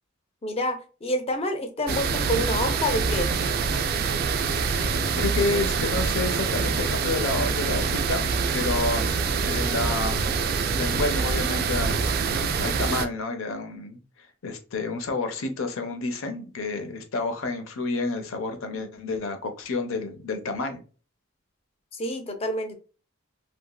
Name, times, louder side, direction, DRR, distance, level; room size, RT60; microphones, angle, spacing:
voice 1, 0.4-3.3 21.9-22.7, left 1 dB, 30° left, 7 dB, 0.4 m, -28 dB
sound 1, 1.9-13.1, right 5 dB, 50° right, 0.3 m, -25 dB
voice 2, 4.7-9.1 9.4-10.3 10.7-12.0 12.6-20.8, left 3 dB, 80° left, 7 dB, 0.6 m, -30 dB
2.9 x 2.6 x 2.2 m, 0.35 s
head